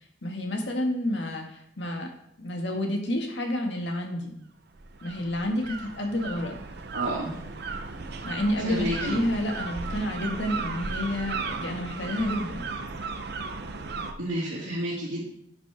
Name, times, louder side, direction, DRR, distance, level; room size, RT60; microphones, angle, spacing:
voice 1, 0.2-2.1 2.4-4.4 5.0-6.6 8.2-12.6, left 1 dB, 70° left, 2 dB, 1.7 m, -29 dB
sound 1, 4.7-14.1, right 4 dB, 60° right, 0.7 m, -35 dB
voice 2, 6.9-7.4 8.6-9.2 14.2-15.2, right 1 dB, 90° right, -8 dB, 2.1 m, -30 dB
11.0 x 6.3 x 3.4 m, 0.72 s
head